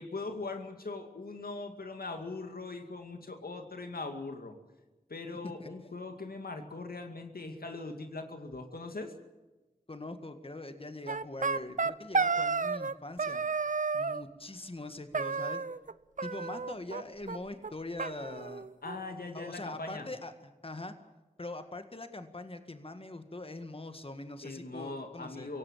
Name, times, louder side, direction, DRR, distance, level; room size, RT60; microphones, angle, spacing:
voice 1, 0.0-4.5 5.1-9.1 18.8-20.1 24.4-25.6, left 3 dB, 85° left, 5 dB, 2.3 m, -40 dB
voice 2, 9.9-13.4 13.9-15.6 16.2-18.7 19.3-20.9 21.4-25.5, left 2 dB, 40° left, 8 dB, 1.8 m, -42 dB
sound 1, 11.1-12.9 13.2-14.2 15.1-15.9 16.2-17.0 17.3-17.4 17.6-17.7 18.0-19.0, right 4 dB, 60° right, 0.7 m, -32 dB
24.5 x 17.5 x 7.5 m, 1.2 s
wide cardioid pair, 45°, 15 cm